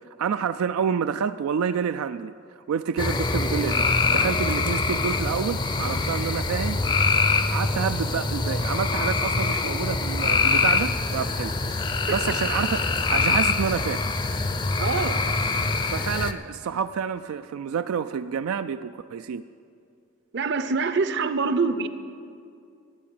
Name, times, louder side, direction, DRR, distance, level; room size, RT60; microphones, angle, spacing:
voice 1, 0.2-2.3 2.7-6.8 7.5-11.5 12.1-14.0 15.9-19.4, right 7 dB, 85° right, 11 dB, 0.3 m, -28 dB
sound 1, 3.0-16.3, left 3 dB, 20° left, 0.4 m, -24 dB
voice 2, 14.8-15.2 20.3-21.9, right 4 dB, 55° right, 11 dB, 0.7 m, -25 dB
13.5 x 8.5 x 8.9 m, 2.4 s
head